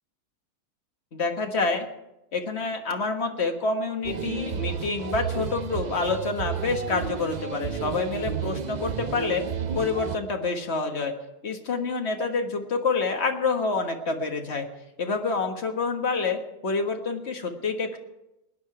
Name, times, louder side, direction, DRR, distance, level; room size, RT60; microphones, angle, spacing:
voice 1, 1.1-1.9 2.3-9.4 9.7-11.1 11.4-14.6 15.0-18.0, left 4 dB, 45° left, 4 dB, 1.6 m, -27 dB
sound 1, 4.0-10.2, right 7 dB, 65° right, 0.4 m, -32 dB
20.5 x 9.7 x 4.8 m, 0.92 s
omnidirectional pair, 1.6 m